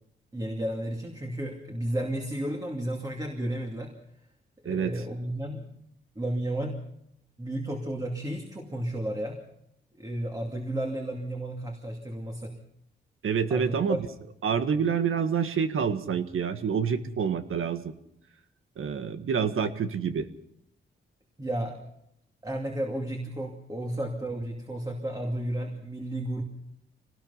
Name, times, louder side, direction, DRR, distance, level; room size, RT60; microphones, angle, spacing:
voice 1, 0.3-3.9 4.6-5.6 6.2-6.8 7.4-9.4 10.0-12.5 13.5-14.0 21.4-21.8 22.4-26.4, right 1 dB, 20° right, 2 dB, 2.5 m, -32 dB
voice 2, 13.2-14.0 14.4-17.9 18.8-20.3, right 7 dB, 80° right, 9 dB, 1.6 m, -27 dB
25.5 x 19.0 x 5.7 m, 0.75 s
wide cardioid pair, 120°, 21 cm